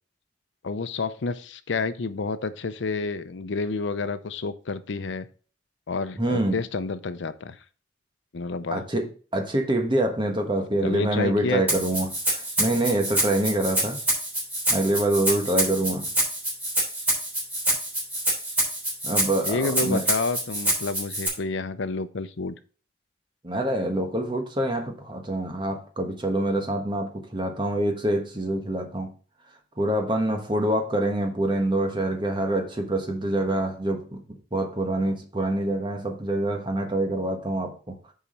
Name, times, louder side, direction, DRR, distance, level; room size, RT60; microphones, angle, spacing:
voice 1, 0.6-5.3 5.9-7.6 8.3-8.8 10.8-11.8 17.7-17.8 19.4-22.5, left 4 dB, 85° left, 0.6 m, -29 dB
voice 2, 6.2-6.6 8.7-14.0 14.7-16.1 19.0-20.0 23.4-29.1 29.8-34.2 34.5-37.9, right 1 dB, 25° right, 1.3 m, -26 dB
Rattle (instrument), 11.7-21.3, right 1 dB, 10° right, 3.5 m, -26 dB
7.2 x 4.8 x 5.2 m
head